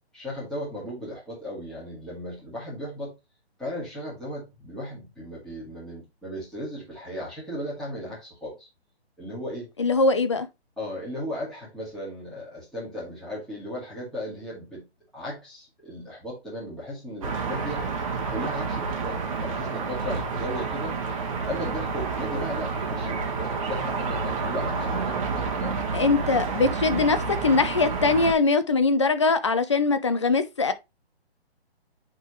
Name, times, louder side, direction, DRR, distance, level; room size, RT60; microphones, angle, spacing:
voice 1, 0.0-3.1 3.6-8.7 9.2-9.7 10.8-14.8 15.1-17.9 18.3-20.9 21.4-25.8, equal, ahead, 2.1 m, -36 dB
voice 2, 9.8-10.5 25.9-30.7, left 3 dB, 30° left, 0.5 m, -22 dB
sound 1, 17.2-28.3, right 4 dB, 30° right, 1.3 m, -29 dB
8.8 x 3.8 x 3.0 m
hypercardioid pair, 160°, 32 cm